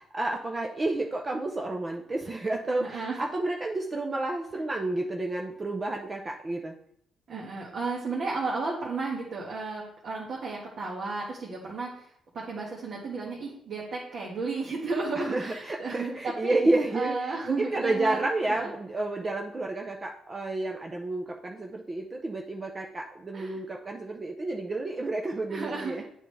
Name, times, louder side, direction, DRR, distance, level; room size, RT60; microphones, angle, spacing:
voice 1, 0.0-6.7 15.1-26.0, right 2 dB, 30° right, 1 dB, 0.7 m, -30 dB
voice 2, 2.8-3.3 7.3-16.6 16.9-18.7 23.3-23.6 25.5-26.0, right 3 dB, 55° right, -4 dB, 1.6 m, -33 dB
8.4 x 5.0 x 3.3 m, 0.71 s
cardioid pair, 90°, 0 cm